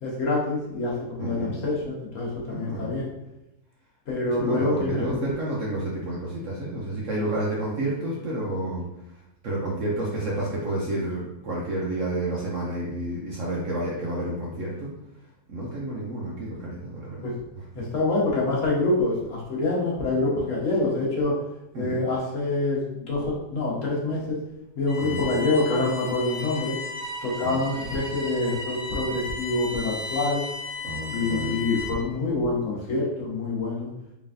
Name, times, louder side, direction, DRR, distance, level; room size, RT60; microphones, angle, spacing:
voice 1, 0.0-3.1 4.1-5.2 17.2-17.3 17.7-21.3 21.7-24.4 24.7-26.7 27.2-30.4 31.1-33.9, left 2 dB, 55° left, -4 dB, 1.4 m, -26 dB
voice 2, 1.2-1.5 2.5-2.9 4.3-8.8 9.4-14.9 15.5-17.8 21.7-22.1 25.0-25.3 27.4-27.7 30.8-31.6, right 1 dB, 65° right, -4 dB, 0.9 m, -30 dB
Bowed string instrument, 24.9-32.1, left 3 dB, ahead, 1.1 m, -35 dB
3.8 x 3.3 x 2.5 m, 0.89 s
omnidirectional pair, 1.7 m